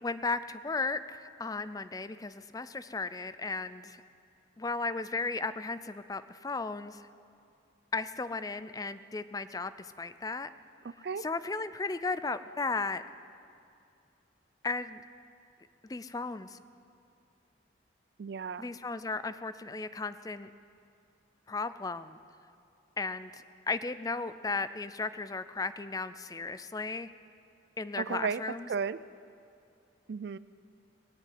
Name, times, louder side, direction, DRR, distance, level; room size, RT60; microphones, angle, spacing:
voice 1, 0.0-4.0 4.6-7.0 7.9-10.5 11.2-13.0 14.6-15.0 15.9-16.6 18.6-20.5 21.5-22.2 23.0-27.1 27.8-28.7, left 3 dB, 20° left, 13 dB, 0.4 m, -35 dB
voice 2, 10.8-11.3 18.2-18.7 28.0-28.4 28.7-29.0 30.1-30.4, right 6 dB, 55° right, 17 dB, 0.4 m, -34 dB
19.5 x 7.6 x 9.5 m, 2.5 s
head